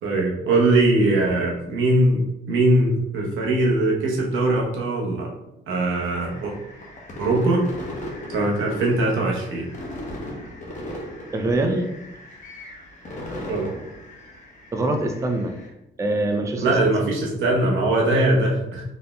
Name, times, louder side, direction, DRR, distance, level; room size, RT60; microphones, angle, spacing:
voice 1, 0.0-5.3 5.7-6.5 7.2-7.6 8.3-9.7 13.5-13.7 16.6-18.8, right 2 dB, 80° right, -1 dB, 1.0 m, -21 dB
sound 1, 5.9-15.7, left 1 dB, 40° left, 1.1 m, -38 dB
voice 2, 11.3-11.9 14.7-15.5 16.0-16.7, right 2 dB, 15° right, 4 dB, 0.4 m, -23 dB
3.9 x 3.6 x 2.3 m, 0.89 s
cardioid pair, 90°, 20 cm